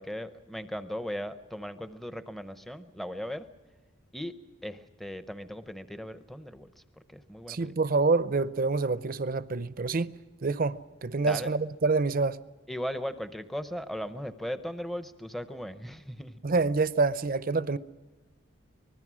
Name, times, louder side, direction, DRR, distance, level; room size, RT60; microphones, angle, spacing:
voice 1, 0.0-3.4 4.1-4.3 4.6-6.7 7.1-7.7 11.2-11.5 12.7-16.4, equal, ahead, 0.7 m, -37 dB
voice 2, 7.5-12.4 16.4-17.8, right 3 dB, 45° right, 0.6 m, -27 dB
25.0 x 20.5 x 6.2 m
head